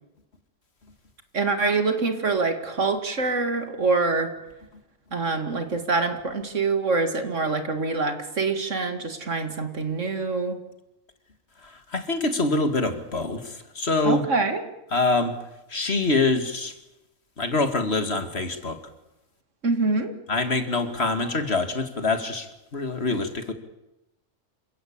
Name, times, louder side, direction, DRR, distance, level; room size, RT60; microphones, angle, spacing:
voice 1, 1.3-4.3 5.1-10.6 14.0-14.6 19.6-20.1, right 3 dB, 70° right, 8 dB, 2.6 m, -25 dB
voice 2, 11.6-14.2 14.9-15.4 15.7-16.7 17.4-18.8 20.3-23.5, left 3 dB, 55° left, 9 dB, 2.4 m, -25 dB
27.5 x 16.5 x 8.7 m, 0.93 s
omnidirectional pair, 1.3 m